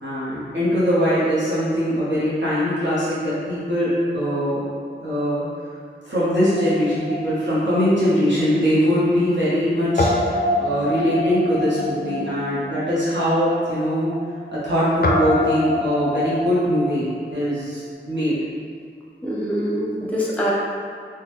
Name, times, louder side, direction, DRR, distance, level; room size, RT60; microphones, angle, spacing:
voice 1, 0.0-4.6 5.0-5.4 6.0-14.1 14.5-18.4, equal, 70° right, -11 dB, 0.9 m, -21 dB
Guitar, 6.3-8.7 9.0-9.1 10.0-17.8, left 1 dB, 50° left, 0.4 m, -27 dB
Wind instrument woodwind instrument, 7.3-12.6, right 4 dB, 40° right, 0.9 m, -41 dB
voice 2, 19.2-20.5, equal, 5° left, -5 dB, 0.7 m, -24 dB
3.6 x 2.2 x 3.1 m, 2.2 s
wide cardioid pair, 45°, 19 cm